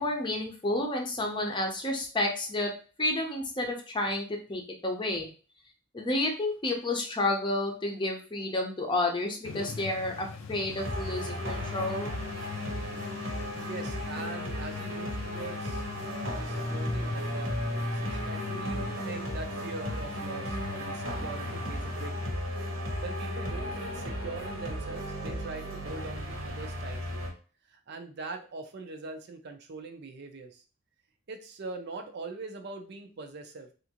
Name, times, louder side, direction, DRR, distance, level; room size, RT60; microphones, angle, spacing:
voice 1, 0.0-5.3 5.9-12.2, left 2 dB, 25° left, 2 dB, 0.6 m, -30 dB
sound 1, 9.4-22.1, left 4 dB, 85° left, 0.5 m, -44 dB
sound 2, 10.8-27.3, left 1 dB, 80° right, 1.0 m, -34 dB
voice 2, 13.6-22.4 23.0-27.2 27.7-30.6 31.3-33.7, right 3 dB, 55° right, 6 dB, 0.5 m, -42 dB
3.4 x 2.5 x 2.9 m, 0.37 s
head